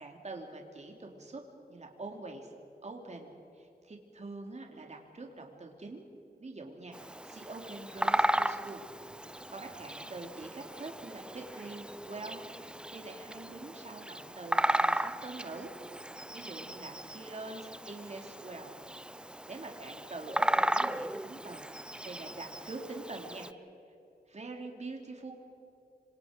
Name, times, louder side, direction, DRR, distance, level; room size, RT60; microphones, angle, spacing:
voice 1, 0.0-1.4 1.7-2.5 2.8-6.0 6.4-7.0 7.2-8.9 9.2-15.7 16.3-18.7 19.5-23.5 24.3-25.3, right 3 dB, 40° right, 2 dB, 3.0 m, -45 dB
Bird vocalization bird call bird song, 6.9-23.5, right 1 dB, 5° right, 0.4 m, -35 dB
27.0 x 25.0 x 5.2 m, 2.7 s
wide cardioid pair, 140°, 17 cm